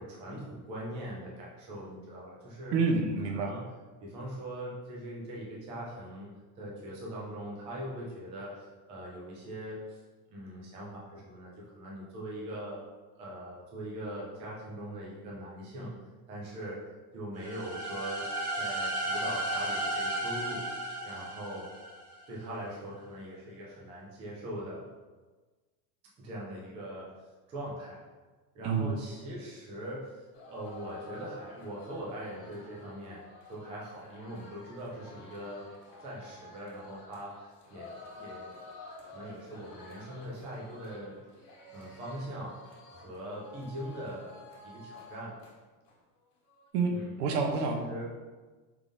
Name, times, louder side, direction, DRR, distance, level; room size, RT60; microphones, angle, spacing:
voice 1, 0.0-2.8 3.2-3.6 4.0-10.0 10.3-12.9 13.2-15.9 16.3-16.8 17.1-18.3 18.5-20.7 21.0-21.7 22.3-24.8 26.2-27.1 27.5-28.0 28.5-33.2 33.5-35.7 36.0-38.6 39.0-41.2 41.7-42.6 42.9-45.3 46.9-48.0, right 1 dB, 15° right, -5 dB, 0.3 m, -41 dB
voice 2, 2.7-3.5 28.6-28.9 46.7-46.9 47.2-47.8, right 4 dB, 75° right, 3 dB, 0.9 m, -28 dB
sound 1, 17.4-22.2, right 1 dB, 30° right, 1.1 m, -34 dB
sound 2, 30.3-45.5 45.9-46.0 46.3-46.7, left 3 dB, 85° left, 1.4 m, -51 dB
4.7 x 3.6 x 2.6 m, 1.3 s
supercardioid pair, 155°, 48 cm